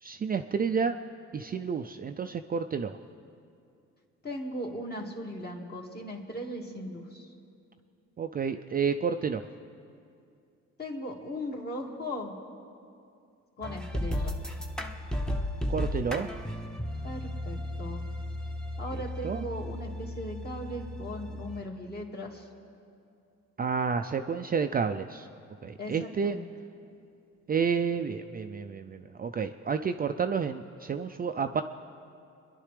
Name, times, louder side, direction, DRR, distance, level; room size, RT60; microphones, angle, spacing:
voice 1, 0.0-1.0 1.3-3.0 8.2-9.4 15.7-16.3 19.2-19.4 23.6-25.3 25.6-26.4 27.5-31.6, right 6 dB, 30° right, 7 dB, 0.4 m, -30 dB
voice 2, 4.2-7.3 10.8-12.3 13.6-14.3 17.0-18.0 18.8-22.5 25.8-26.5, equal, 30° left, 0 dB, 2.2 m, -38 dB
sound 1, 13.6-21.6, left 1 dB, ahead, 0.9 m, -35 dB
26.0 x 11.0 x 3.3 m, 2.5 s
cardioid pair, 90°, 30 cm